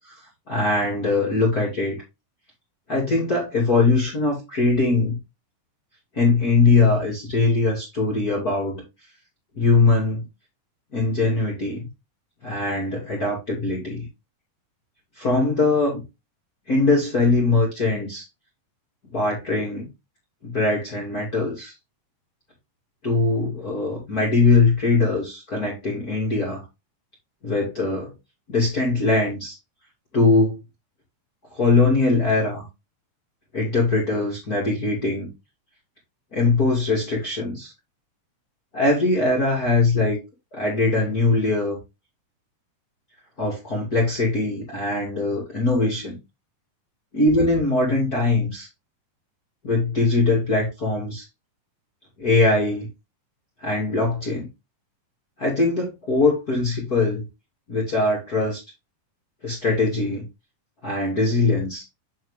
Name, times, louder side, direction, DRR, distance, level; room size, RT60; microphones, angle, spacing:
voice 1, 0.5-2.0 2.9-5.2 6.1-8.8 9.6-10.2 10.9-11.9 12.4-14.1 15.2-16.0 16.7-18.2 19.1-19.9 20.4-21.7 23.0-26.6 27.4-28.1 28.5-29.6 30.1-30.6 31.5-32.7 33.5-35.3 36.3-37.7 38.7-40.2 40.5-41.8 43.4-46.2 47.1-48.7 49.6-51.2 52.2-52.9 53.6-54.5 55.4-57.2 57.7-58.6 59.4-60.2 60.8-61.8, left 3 dB, 30° left, 2.5 m, -21 dB
8.9 x 4.3 x 3.6 m
omnidirectional pair, 3.8 m